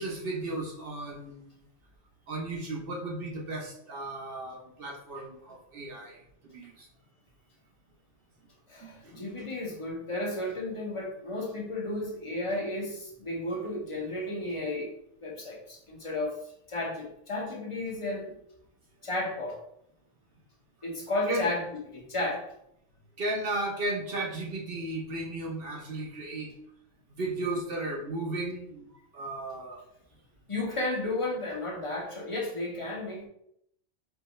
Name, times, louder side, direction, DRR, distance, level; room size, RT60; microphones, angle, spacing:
voice 1, 0.0-1.6 2.3-6.2 6.4-6.9 8.8-9.2 21.3-21.5 23.2-26.6 27.2-28.9 29.1-29.8, right 2 dB, 50° right, -1 dB, 1.0 m, -35 dB
voice 2, 8.7-14.9 15.2-16.3 16.7-18.4 19.0-19.6 20.8-21.7 21.9-22.4 30.5-33.3, left 2 dB, 25° left, -1 dB, 0.9 m, -33 dB
4.5 x 3.3 x 3.2 m, 0.74 s
omnidirectional pair, 1.3 m